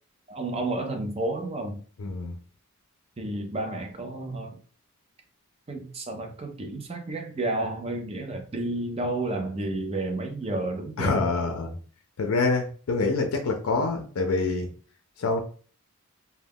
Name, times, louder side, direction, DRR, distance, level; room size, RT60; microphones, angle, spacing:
voice 1, 0.3-1.8 3.2-4.6 5.7-11.5, right 2 dB, 25° right, 0.5 m, -31 dB
voice 2, 2.0-2.4 11.0-11.7 12.2-14.7 15.2-15.4, left 3 dB, 75° left, 0.4 m, -26 dB
2.2 x 2.2 x 3.4 m
head